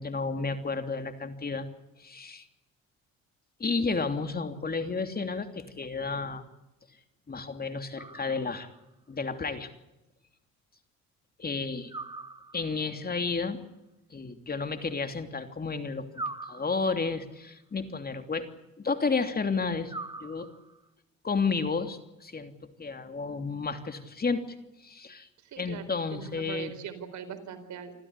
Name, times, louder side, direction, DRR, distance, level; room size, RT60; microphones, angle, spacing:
voice 1, 0.0-1.7 2.0-2.5 3.6-6.4 7.3-8.7 9.1-9.7 11.4-11.9 12.5-13.6 14.1-16.1 16.4-18.5 18.8-20.5 21.2-22.5 22.8-24.4 24.8-25.3 25.6-26.7, left 4 dB, 30° left, 8 dB, 3.0 m, -31 dB
sound 1, 8.0-8.8 11.9-12.9 16.1-17.2 19.9-20.9, right 3 dB, 15° right, 1.8 m, -41 dB
voice 2, 25.4-25.9 26.1-27.9, right 8 dB, 70° right, 7 dB, 4.4 m, -41 dB
27.0 x 15.0 x 9.8 m, 0.92 s
cardioid pair, 90°, 30 cm